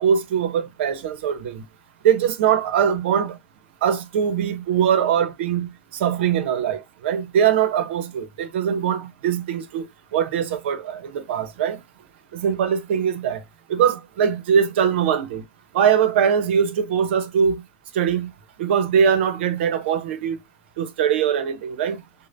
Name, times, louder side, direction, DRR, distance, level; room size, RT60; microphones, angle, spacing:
voice 1, 0.0-1.6 2.0-3.4 3.8-5.7 6.0-9.8 10.1-11.8 12.3-13.4 13.7-15.4 15.7-17.6 17.9-18.3 18.6-20.4 20.8-22.0, right 8 dB, 70° right, 1.0 m, -21 dB
6.5 x 2.4 x 2.6 m
hypercardioid pair, 100°, 6 cm